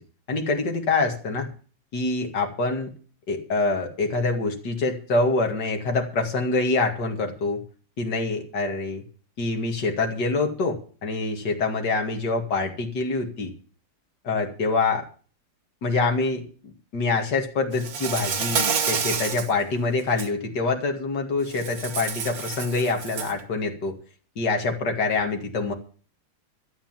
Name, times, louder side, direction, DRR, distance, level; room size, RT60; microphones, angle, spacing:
voice 1, 0.3-1.5 1.9-2.9 3.3-7.6 8.0-9.0 9.4-13.5 14.2-15.1 15.8-16.4 16.9-23.9 24.4-25.7, left 3 dB, 65° left, 2 dB, 3.0 m, -25 dB
Insect, 17.8-19.5 20.0-20.3 21.5-23.4, right 6 dB, 55° right, 1.6 m, -28 dB
13.0 x 8.8 x 7.5 m, 0.40 s
omnidirectional pair, 2.0 m